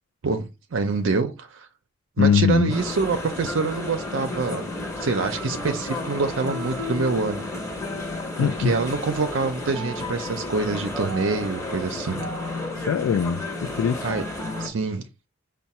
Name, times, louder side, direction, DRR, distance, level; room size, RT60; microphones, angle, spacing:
voice 1, 0.2-1.7 2.2-4.7 5.0-7.4 8.4-12.2 14.0-14.2 14.6-15.1, right 4 dB, 65° right, 0.5 m, -26 dB
voice 2, 2.2-2.7 8.4-8.7 12.9-14.1, left 7 dB, 80° left, 0.3 m, -21 dB
sound 1, 2.7-14.7, left 2 dB, 15° left, 0.8 m, -32 dB
5.5 x 2.2 x 4.2 m
head